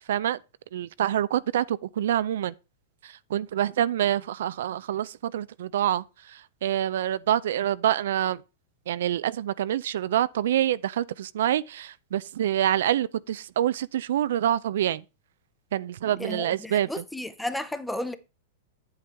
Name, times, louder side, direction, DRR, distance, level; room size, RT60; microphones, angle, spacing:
voice 1, 0.1-0.4 0.7-2.5 3.0-8.4 8.9-15.0 15.7-17.0, right 11 dB, 75° right, 0.3 m, -26 dB
voice 2, 16.2-18.1, left 1 dB, 5° left, 0.7 m, -33 dB
8.2 x 7.8 x 3.4 m
hypercardioid pair, 130°, 0 cm